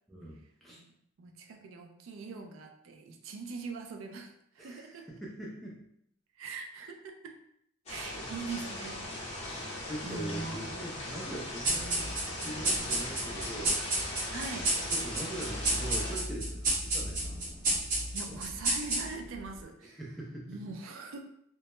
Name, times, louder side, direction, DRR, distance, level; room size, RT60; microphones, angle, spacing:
voice 1, 0.1-0.8 4.6-5.8 8.0-8.3 9.9-12.1 12.4-13.8 14.9-17.2 19.8-20.6, right 1 dB, ahead, -4 dB, 0.3 m, -42 dB
voice 2, 0.8-5.2 6.4-7.4 7.9-9.1 9.4-10.6 14.3-14.7 18.1-20.0 20.5-21.2, right 4 dB, 75° right, 4 dB, 0.4 m, -42 dB
sound 1, 7.9-16.2, left 1 dB, 30° left, 0.7 m, -39 dB
sound 2, 11.6-19.4, right 1 dB, 40° right, 0.7 m, -31 dB
2.1 x 2.0 x 2.9 m, 0.72 s
head